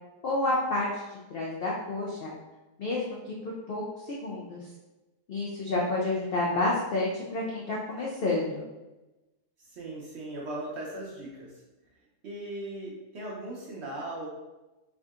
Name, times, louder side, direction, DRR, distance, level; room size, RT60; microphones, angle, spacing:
voice 1, 0.2-1.0 1.3-2.3 2.8-4.6 5.3-8.6, left 2 dB, 85° left, -4 dB, 0.5 m, -30 dB
voice 2, 9.7-11.5 12.2-14.3, right 1 dB, 60° right, -4 dB, 0.8 m, -38 dB
3.6 x 2.7 x 2.4 m, 1.1 s
omnidirectional pair, 1.6 m